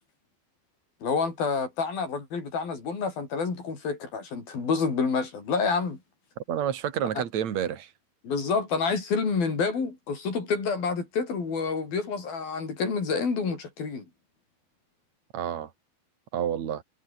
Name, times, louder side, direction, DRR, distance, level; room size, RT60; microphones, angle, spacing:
voice 1, 1.0-6.0 7.2-7.3 8.2-14.1, left 5 dB, 65° left, 8.0 m, -28 dB
voice 2, 6.5-7.9 15.3-15.7 16.3-16.8, right 9 dB, 50° right, 3.4 m, -29 dB
omnidirectional pair, 4.5 m